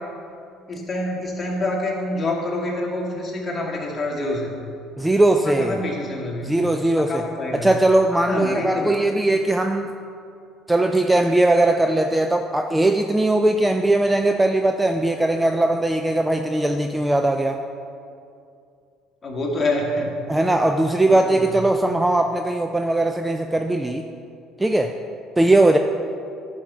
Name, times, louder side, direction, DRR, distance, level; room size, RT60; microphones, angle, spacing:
voice 1, 0.7-4.5 5.4-6.5 6.9-7.7 8.3-8.9 19.2-20.1 21.0-21.6, left 1 dB, 30° left, -2 dB, 2.3 m, -26 dB
voice 2, 5.0-5.8 6.4-7.3 7.5-9.9 10.7-17.6 20.3-24.1 24.6-24.9 25.4-25.8, right 2 dB, 10° right, 6 dB, 0.5 m, -19 dB
10.5 x 6.2 x 5.7 m, 2.5 s
supercardioid pair, 95°, 0 cm